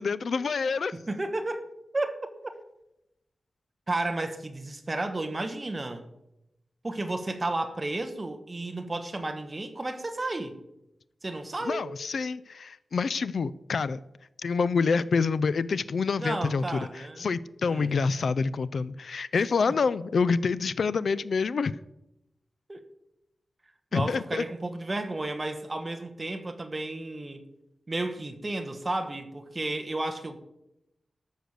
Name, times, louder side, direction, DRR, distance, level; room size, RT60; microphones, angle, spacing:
voice 1, 0.0-0.9 11.6-14.0 14.4-21.7 23.9-24.4, left 5 dB, 65° left, 17 dB, 0.4 m, -27 dB
voice 2, 0.9-1.7 1.9-2.3 3.9-6.0 6.8-10.6 11.2-11.9 16.2-17.3 17.7-17.9 22.7-22.8 23.9-27.4 27.9-30.4, right 2 dB, 25° right, 6 dB, 1.2 m, -32 dB
13.0 x 6.5 x 6.6 m, 0.88 s
wide cardioid pair, 155°, 0 cm